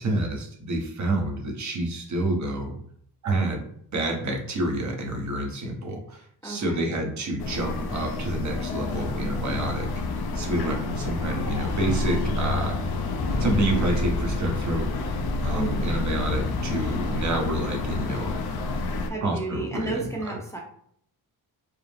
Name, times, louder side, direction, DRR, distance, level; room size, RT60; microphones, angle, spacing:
voice 1, 0.0-2.7 3.2-9.9 10.3-12.8 13.4-14.9 15.4-18.4 19.2-20.1, right 1 dB, 50° right, 1 dB, 1.0 m, -28 dB
voice 2, 6.4-6.8 15.5-15.9 19.1-20.6, right 2 dB, 10° left, -2 dB, 0.6 m, -32 dB
sound 1, 7.4-19.1, left 2 dB, 75° left, 0.6 m, -28 dB
4.7 x 2.0 x 3.4 m, 0.67 s
cardioid pair, 110°, 38 cm